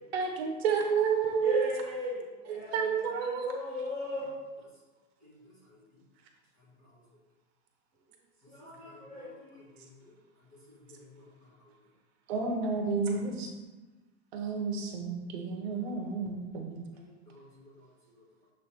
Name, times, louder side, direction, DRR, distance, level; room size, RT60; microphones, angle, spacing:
voice 1, 0.1-1.7 2.5-3.5 12.3-13.5 14.3-16.8, right 5 dB, 50° right, 3 dB, 1.0 m, -30 dB
voice 2, 1.4-2.9 3.1-4.4 8.5-9.6, left 1 dB, 5° right, -15 dB, 0.3 m, -37 dB
voice 3, 5.2-5.8 6.8-6.9 8.4-10.2 10.5-11.7 16.9-17.7 18.1-18.2, left 2 dB, 20° left, -5 dB, 1.3 m, -56 dB
6.9 x 3.2 x 4.3 m, 1.2 s
supercardioid pair, 175°, 39 cm